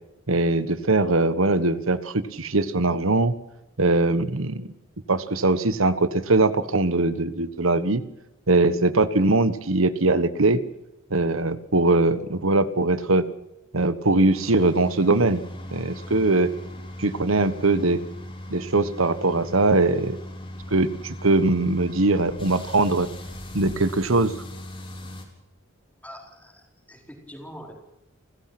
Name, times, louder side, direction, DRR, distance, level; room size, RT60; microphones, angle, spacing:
voice 1, 0.3-3.3 3.8-4.7 5.1-8.0 8.5-10.6 11.1-13.3 13.7-15.4 15.7-16.5 17.0-18.0 18.5-20.2 20.7-23.1 23.5-24.3, right 2 dB, 75° right, 14 dB, 1.3 m, -21 dB
sound 1, 14.3-25.2, left 1 dB, 25° left, 4.3 m, -38 dB
voice 2, 26.0-26.6 26.9-27.7, equal, 5° left, 1 dB, 4.5 m, -43 dB
30.0 x 15.0 x 6.0 m, 0.91 s
head